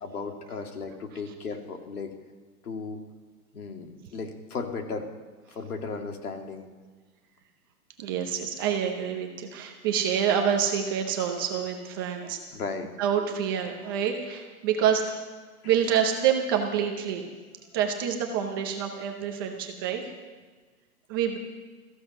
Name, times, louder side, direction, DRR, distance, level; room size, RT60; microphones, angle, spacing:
voice 1, 0.0-2.1 2.6-3.0 3.5-5.1 5.5-6.7 12.5-12.9, left 4 dB, 80° left, 4 dB, 2.5 m, -35 dB
voice 2, 8.0-12.4 13.0-15.2 15.6-17.3 17.7-20.4 21.1-21.4, right 8 dB, 15° right, 3 dB, 0.6 m, -27 dB
16.0 x 14.5 x 5.5 m, 1.4 s
hypercardioid pair, 160°, 45 cm